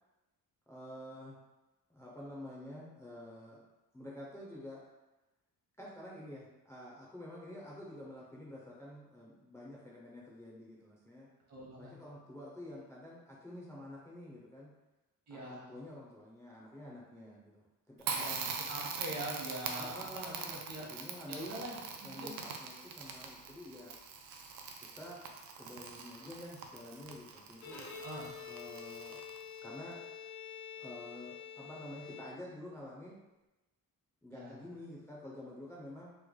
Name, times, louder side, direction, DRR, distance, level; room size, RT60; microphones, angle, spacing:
voice 1, 0.7-1.4 1.9-3.7 3.9-4.8 5.8-11.3 11.8-14.7 15.3-18.3 19.8-21.6 22.0-24.0 24.9-25.2 25.6-27.9 28.5-29.2 29.6-30.0 30.8-33.2 34.2-36.2, left 1 dB, 10° left, -5 dB, 0.4 m, -49 dB
voice 2, 11.5-11.9 15.3-15.8 18.1-20.9 21.3-22.5 28.0-28.3 34.3-34.5, right 1 dB, 50° right, -3 dB, 0.9 m, -44 dB
Crackle, 18.0-29.6, right 5 dB, 75° right, 0.5 m, -43 dB
Bowed string instrument, 27.5-32.8, left 7 dB, 55° left, 0.6 m, -48 dB
3.1 x 2.1 x 3.6 m, 1.0 s
cardioid pair, 155°, 34 cm